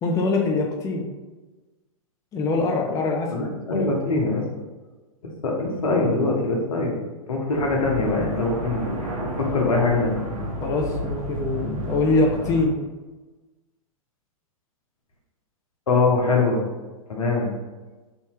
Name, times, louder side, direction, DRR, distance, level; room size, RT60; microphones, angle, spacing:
voice 1, 0.0-1.1 2.3-4.2 10.6-12.8, left 3 dB, 20° left, 0 dB, 0.4 m, -24 dB
voice 2, 3.3-4.5 5.2-7.0 7.3-10.2 15.9-16.6 17.1-17.5, left 3 dB, 75° left, 0 dB, 1.0 m, -23 dB
sound 1, 7.5-12.7, right 1 dB, 75° right, 0.9 m, -31 dB
3.4 x 2.7 x 3.0 m, 1.2 s
hypercardioid pair, 110°, 18 cm